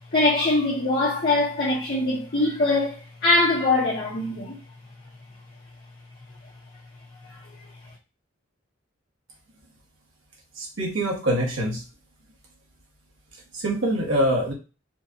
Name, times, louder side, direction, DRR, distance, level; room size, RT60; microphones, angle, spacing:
voice 1, 0.1-4.6 7.2-7.4, left 2 dB, 45° left, 1.0 m, -22 dB
voice 2, 10.6-11.8 13.5-14.5, right 1 dB, 65° right, 1.4 m, -24 dB
4.5 x 2.4 x 2.7 m
head